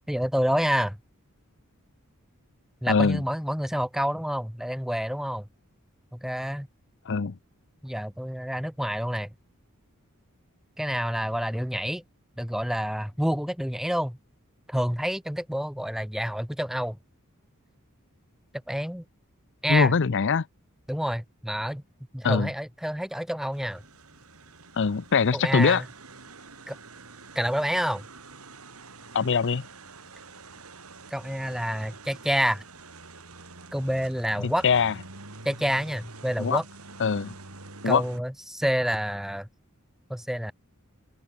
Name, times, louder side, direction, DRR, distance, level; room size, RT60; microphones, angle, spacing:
voice 1, 0.1-1.0 2.8-5.5 6.1-6.7 7.8-9.3 10.8-12.0 12.4-14.2 14.7-17.0 18.7-19.0 19.6-19.9 20.9-21.8 22.1-23.8 25.3-25.9 26.7-26.8 27.3-28.1 31.1-32.6 33.7-34.6 35.4-36.6 37.8-39.5 40.1-40.5, equal, ahead, 1.4 m, -28 dB
voice 2, 2.9-3.2 7.1-7.3 19.7-20.5 22.2-22.5 24.8-25.8 29.1-29.6 34.4-34.9 36.4-36.6 37.0-37.3 37.8-38.0, left 5 dB, 55° left, 0.6 m, -22 dB
sound 1, 23.5-38.2, right 3 dB, 75° right, 4.8 m, -47 dB
open air
head